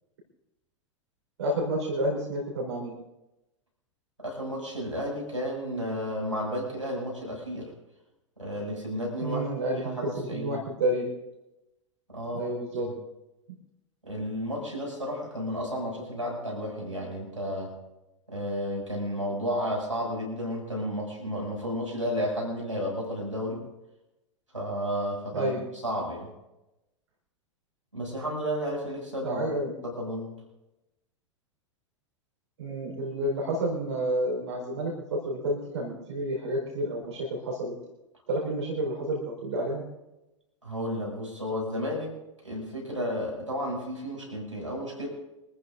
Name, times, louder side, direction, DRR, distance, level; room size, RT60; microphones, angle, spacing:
voice 1, 1.4-2.9 9.2-11.1 12.3-12.9 25.3-25.6 29.2-29.7 32.6-37.7 38.3-39.8, right 1 dB, 65° right, -2 dB, 4.7 m, -30 dB
voice 2, 4.2-7.7 8.4-9.4 9.8-10.6 12.1-12.5 12.8-12.9 14.0-17.8 18.3-23.6 24.5-25.6 25.8-26.3 27.9-29.4 29.8-30.4 40.6-42.1 42.4-45.1, equal, 90° right, -1 dB, 6.8 m, -32 dB
25.5 x 14.5 x 2.7 m, 0.96 s
figure-of-eight pair, 90°, 16 cm